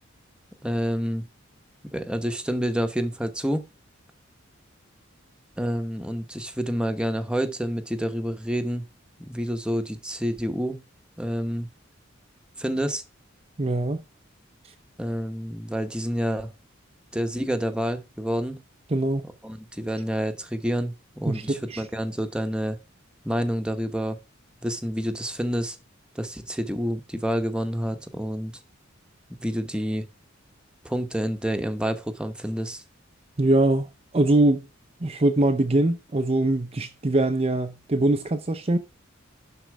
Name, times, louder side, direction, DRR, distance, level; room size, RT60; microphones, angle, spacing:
voice 1, 0.6-1.2 1.9-3.7 5.6-8.8 9.2-10.8 11.2-11.7 12.6-13.0 15.0-16.5 17.1-18.6 19.4-22.8 23.2-24.2 24.6-25.8 26.1-28.6 29.4-30.1 30.8-32.8, equal, 5° right, 1.1 m, -28 dB
voice 2, 13.6-14.0 18.9-19.2 21.3-21.8 33.4-33.9 34.1-34.7 35.0-38.8, right 2 dB, 30° right, 0.6 m, -22 dB
11.5 x 4.5 x 4.7 m
head